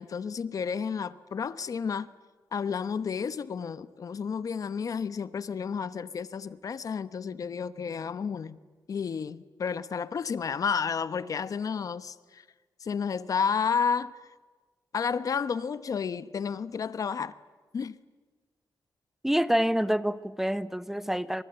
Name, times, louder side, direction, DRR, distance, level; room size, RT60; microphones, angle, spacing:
voice 1, 0.0-2.1 2.5-8.6 8.9-12.4 12.8-14.1 14.9-17.3 17.7-18.0, left 6 dB, 50° left, 1.0 m, -31 dB
voice 2, 19.2-21.4, equal, 5° right, 0.8 m, -27 dB
29.0 x 25.5 x 7.9 m
cardioid pair, 115°, 7 cm